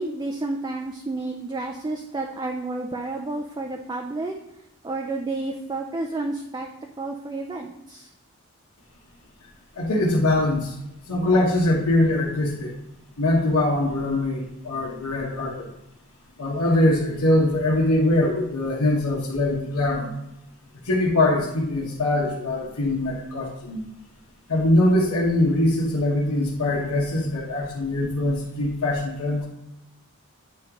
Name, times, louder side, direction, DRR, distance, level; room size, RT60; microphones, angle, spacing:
voice 1, 0.0-4.3 4.8-6.7 7.0-8.1, right 2 dB, 20° right, 3 dB, 0.3 m, -30 dB
voice 2, 9.8-10.8 11.1-12.7 13.2-15.7 16.4-20.1 20.8-23.8 24.5-29.5, left 1 dB, 90° left, -3 dB, 1.0 m, -22 dB
8.8 x 3.7 x 2.9 m, 0.87 s
head